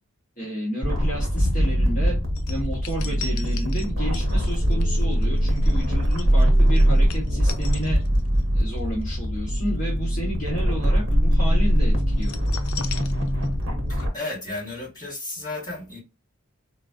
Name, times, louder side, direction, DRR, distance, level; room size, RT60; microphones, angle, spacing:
voice 1, 0.4-2.2 2.5-8.0 8.5-12.3, equal, 35° left, 0.9 m, -31 dB
sound 1, 0.8-14.1, equal, 55° right, 0.9 m, -22 dB
sound 2, 2.4-8.4 8.8-9.0 12.2-13.7 14.0-14.1, left 6 dB, 70° left, 0.4 m, -39 dB
voice 2, 13.9-16.0, left 2 dB, 15° left, 1.6 m, -33 dB
3.9 x 2.4 x 2.3 m
head